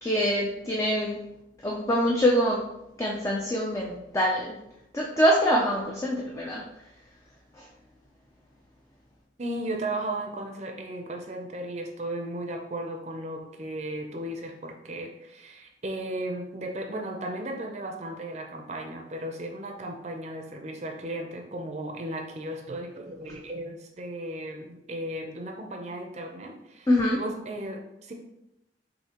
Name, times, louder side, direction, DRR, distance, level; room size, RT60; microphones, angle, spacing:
voice 1, 0.0-1.2 1.6-2.6 3.0-4.6 4.9-6.6 7.6-7.7 26.9-27.2, equal, 15° left, -2 dB, 0.4 m, -24 dB
voice 2, 9.4-26.9 27.1-28.1, right 1 dB, 40° right, 2 dB, 0.5 m, -35 dB
6.5 x 2.7 x 2.9 m, 0.88 s
head